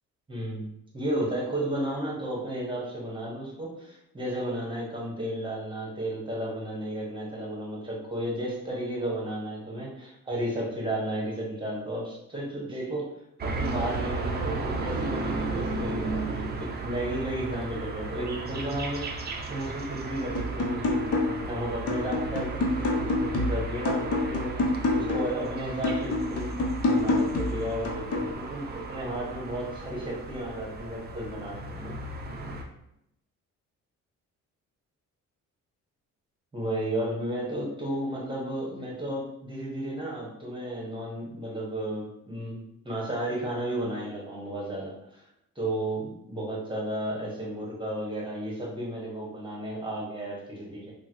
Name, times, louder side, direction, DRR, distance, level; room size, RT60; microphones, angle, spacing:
voice 1, 0.3-13.1 13.4-24.6 24.9-31.9 32.3-32.6 36.5-42.6 42.8-45.2 45.6-50.9, right 1 dB, 15° right, -3 dB, 1.2 m, -33 dB
sound 1, 13.4-32.6, right 3 dB, 35° right, 0.5 m, -35 dB
sound 2, 20.3-21.5 21.9-25.4 25.8-28.3, left 2 dB, 55° left, 0.7 m, -28 dB
3.6 x 2.1 x 3.0 m, 0.79 s
cardioid pair, 90°, 30 cm